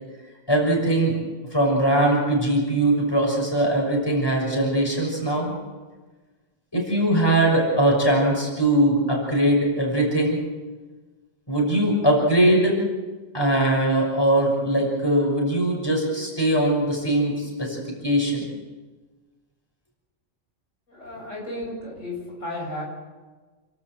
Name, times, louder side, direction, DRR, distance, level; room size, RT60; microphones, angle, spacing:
voice 1, 0.5-1.2 1.5-5.5 6.7-10.4 11.5-12.8 13.3-17.8 18.0-18.5, right 1 dB, 20° left, -1 dB, 6.3 m, -21 dB
voice 2, 20.9-22.8, left 1 dB, 85° left, -2 dB, 8.1 m, -33 dB
29.5 x 13.0 x 7.9 m, 1.3 s
omnidirectional pair, 1.3 m